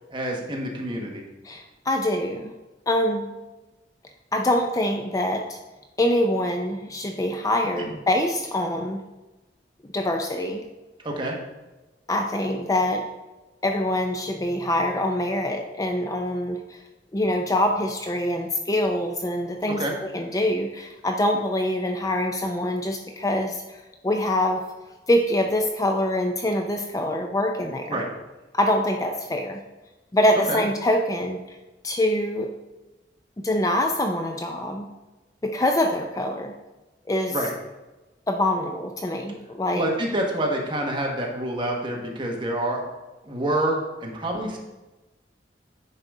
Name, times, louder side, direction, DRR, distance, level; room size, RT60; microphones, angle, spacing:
voice 1, 0.1-1.2 7.8-7.9 11.0-11.4 19.8-19.9 27.9-28.1 30.5-30.6 37.3-37.5 39.7-42.9 43.2-44.6, right 1 dB, 30° right, -1 dB, 1.4 m, -27 dB
voice 2, 1.4-2.5 2.9-3.3 4.3-5.6 6.0-9.0 9.9-10.6 12.1-13.1 13.6-16.8 17.1-23.6 24.0-24.6 25.1-28.0 28.5-29.6 30.1-31.4 31.8-32.5 33.4-34.9 35.4-36.5 37.1-37.3 38.3-39.8, left 1 dB, 20° left, 4 dB, 0.5 m, -24 dB
9.8 x 4.0 x 4.9 m, 1.1 s
head